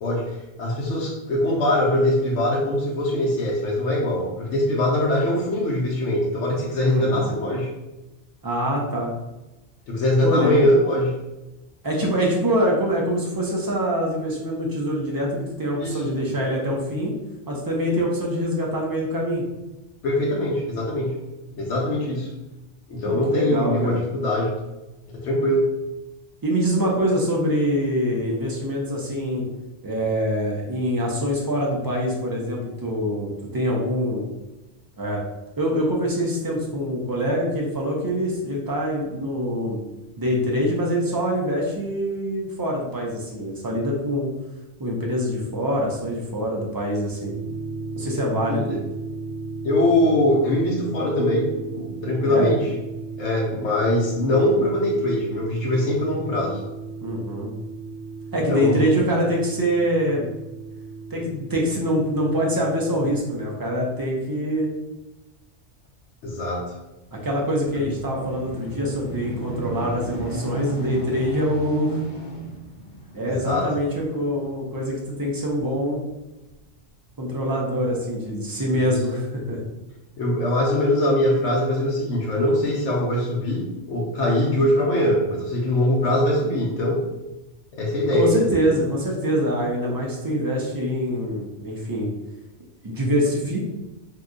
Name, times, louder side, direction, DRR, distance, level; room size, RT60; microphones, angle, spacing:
voice 1, 0.0-7.7 9.9-11.1 15.8-16.0 20.0-21.2 21.5-22.3 22.9-24.6 25.1-25.8 48.5-48.8 49.6-52.7 53.2-56.6 58.5-58.9 66.2-66.7 67.7-67.9 73.1-73.7 78.7-79.0 80.2-87.0 87.7-88.5, left 1 dB, 80° left, -4 dB, 1.0 m, -22 dB
voice 2, 6.8-7.3 8.4-9.1 10.2-10.7 11.8-17.1 17.5-19.4 23.0-24.0 26.4-29.4 29.8-34.2 35.0-35.2 35.6-39.8 40.2-44.3 44.8-47.3 47.9-48.7 52.2-52.5 57.0-57.5 58.3-60.3 61.1-64.7 67.1-72.0 73.1-76.0 77.2-79.6 88.1-92.1 92.8-93.7, equal, 30° right, -2 dB, 0.4 m, -24 dB
sound 1, 47.2-63.2, right 3 dB, 85° right, 0.9 m, -35 dB
sound 2, 67.1-75.9 76.5-76.6, right 2 dB, 50° left, 0.7 m, -34 dB
2.7 x 2.3 x 3.7 m, 1.0 s
omnidirectional pair, 1.2 m